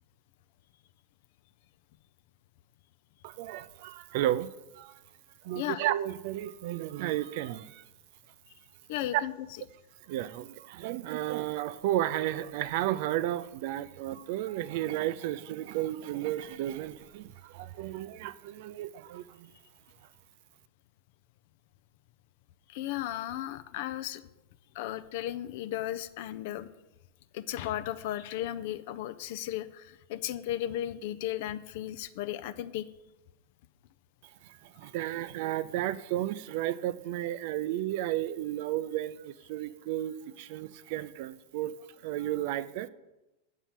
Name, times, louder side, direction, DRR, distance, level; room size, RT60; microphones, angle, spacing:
voice 1, 3.2-4.5 4.7-5.0 5.4-7.8 10.1-19.5 34.4-41.7 42.0-42.9, right 13 dB, 50° right, 0.4 m, -33 dB
voice 2, 8.9-9.3 22.7-24.2 24.7-26.7 27.3-32.9, left 13 dB, 50° left, 0.5 m, -35 dB
8.1 x 5.5 x 7.4 m
figure-of-eight pair, 90°, 0 cm